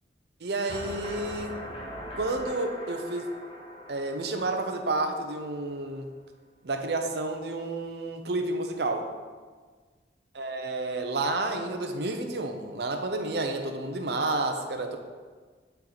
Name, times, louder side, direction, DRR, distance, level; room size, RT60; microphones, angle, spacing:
voice 1, 0.4-1.6 2.1-3.3 3.9-6.1 6.6-9.1 10.3-15.0, right 2 dB, 65° right, 5 dB, 0.7 m, -30 dB
sound 1, 0.7-5.6, equal, 30° left, 1.4 m, -41 dB
8.2 x 4.4 x 4.0 m, 1.5 s
head